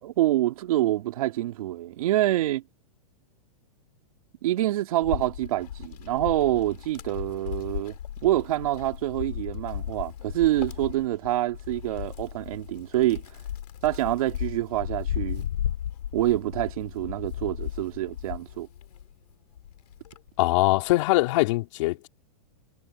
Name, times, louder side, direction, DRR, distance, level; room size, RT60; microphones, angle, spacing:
voice 1, 0.0-2.6 4.4-13.2 13.8-15.5 16.1-18.7, right 15 dB, 65° right, 2.7 m, -26 dB
Wind, 5.0-19.1 19.6-21.1, left 10 dB, 85° left, 3.7 m, -35 dB
voice 2, 20.4-22.1, left 20 dB, 50° left, 2.9 m, -22 dB
hypercardioid pair, 145°, 20 cm